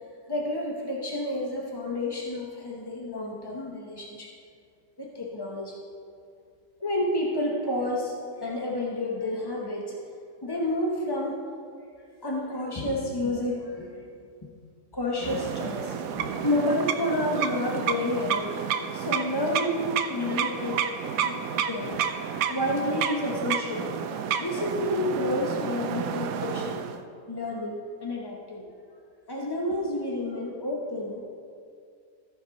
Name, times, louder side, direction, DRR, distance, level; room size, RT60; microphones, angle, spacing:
voice 1, 0.3-4.3 5.0-5.8 6.8-8.1 8.4-9.9 10.4-11.4 12.2-14.0 14.4-14.5 14.9-26.8 27.3-28.7 29.3-31.2, left 1 dB, 30° left, -2 dB, 0.4 m, -30 dB
sound 1, 15.2-27.0, right 8 dB, 70° right, 0.9 m, -30 dB
14.0 x 5.1 x 5.1 m, 2.3 s
omnidirectional pair, 1.9 m